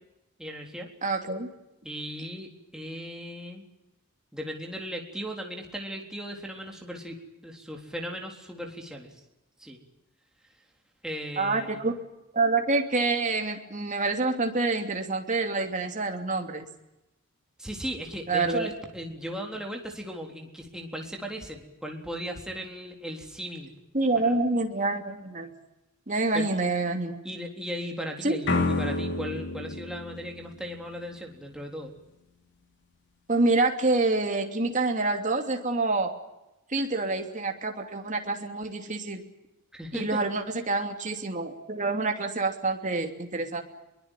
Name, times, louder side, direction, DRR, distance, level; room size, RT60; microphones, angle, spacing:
voice 1, 0.4-0.9 1.8-3.6 4.3-7.2 7.4-9.1 9.6-9.8 11.0-11.8 17.6-23.7 24.1-24.3 26.3-26.5 27.2-31.9 39.7-40.2, equal, 5° right, 0 dB, 3.7 m, -37 dB
voice 2, 1.0-1.5 11.4-11.9 12.3-16.7 18.3-18.7 23.9-25.5 26.1-27.2 28.2-28.4 33.3-36.1 36.7-39.2 39.9-43.6, right 3 dB, 35° right, 4 dB, 2.9 m, -27 dB
sound 1, 28.4-31.3, left 3 dB, 55° left, 3.3 m, -30 dB
23.0 x 22.5 x 9.2 m, 0.95 s
head